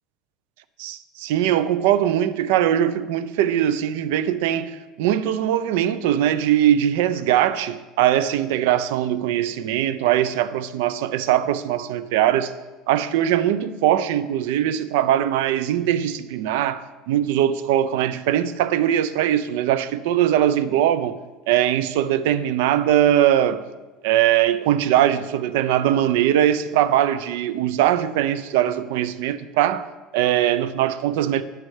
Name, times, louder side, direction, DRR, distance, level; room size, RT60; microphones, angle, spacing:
voice 1, 0.8-12.5 12.9-21.1 21.5-23.6 24.0-29.8 30.1-31.4, right 11 dB, 85° right, 0.4 m, -21 dB
8.7 x 6.4 x 3.2 m
cardioid pair, 150°, 0 cm